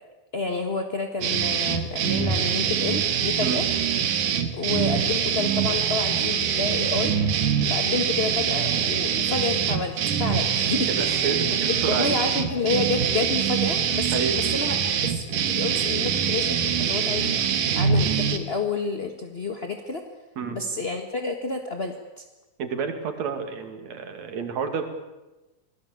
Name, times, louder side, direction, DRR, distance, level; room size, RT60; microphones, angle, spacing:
voice 1, 0.3-3.6 4.5-7.2 7.7-11.6 11.8-17.3 17.7-20.0 20.5-22.2, left 3 dB, 35° left, 4 dB, 1.0 m, -29 dB
sound 1, 1.2-18.4, right 7 dB, 85° right, 3.2 m, -24 dB
voice 2, 10.9-12.2 14.1-14.4 20.4-20.6 22.6-24.8, right 6 dB, 60° right, 7 dB, 3.7 m, -29 dB
27.0 x 18.5 x 8.5 m, 1.1 s
omnidirectional pair, 3.6 m